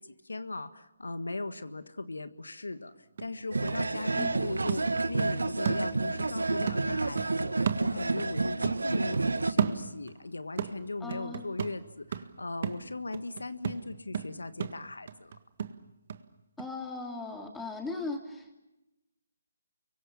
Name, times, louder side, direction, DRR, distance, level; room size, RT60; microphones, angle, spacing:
voice 1, 0.0-15.4, left 2 dB, 85° left, 11 dB, 1.6 m, -38 dB
sound 1, 2.7-2.8 3.2-6.3 6.7-8.4 8.6-10.2 10.6-16.2 16.6-16.7, right 7 dB, 50° right, 1.7 m, -35 dB
sound 2, 3.5-9.5, right 3 dB, 80° right, 1.6 m, -30 dB
voice 2, 11.0-11.4 16.6-18.6, left 3 dB, 5° left, 2 dB, 3.4 m, -38 dB
30.0 x 24.0 x 7.3 m, 0.97 s
figure-of-eight pair, 150°, 0 cm